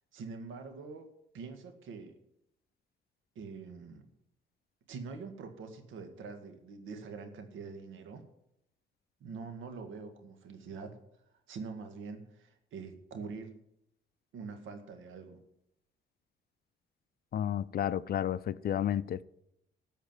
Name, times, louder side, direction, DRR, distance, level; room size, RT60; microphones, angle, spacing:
voice 1, 0.1-1.1 1.3-2.1 3.4-4.1 4.9-8.2 9.2-11.0 11.5-13.5 14.3-15.4, right 4 dB, 85° right, 1.9 m, -44 dB
voice 2, 17.3-19.2, left 10 dB, 50° left, 0.5 m, -31 dB
13.5 x 5.0 x 9.1 m
cardioid pair, 90°, 20 cm